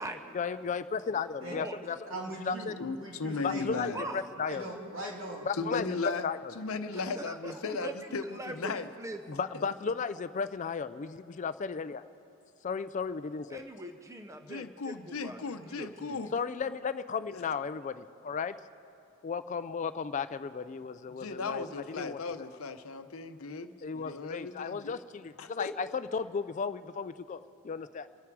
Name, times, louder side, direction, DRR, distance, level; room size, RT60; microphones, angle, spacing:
voice 1, 0.3-2.0 2.4-2.7 3.4-4.7 5.5-5.9 6.2-6.5 9.3-12.0 12.6-13.6 16.3-18.6 19.2-22.2 23.8-27.4 27.6-28.1, left 5 dB, 35° left, 12 dB, 0.3 m, -34 dB
voice 2, 2.1-3.6 4.5-5.4, right 1 dB, 65° right, -2 dB, 2.9 m, -40 dB
voice 3, 2.8-4.0 5.6-6.2 6.6-8.9 14.4-16.3 17.3-17.4 21.1-25.0 25.4-25.7, left 4 dB, 80° left, 9 dB, 0.8 m, -36 dB
voice 4, 6.9-7.9 8.2-9.2 13.5-16.2, right 2 dB, 15° right, 6 dB, 0.6 m, -42 dB
27.5 x 9.5 x 4.7 m, 2.7 s
head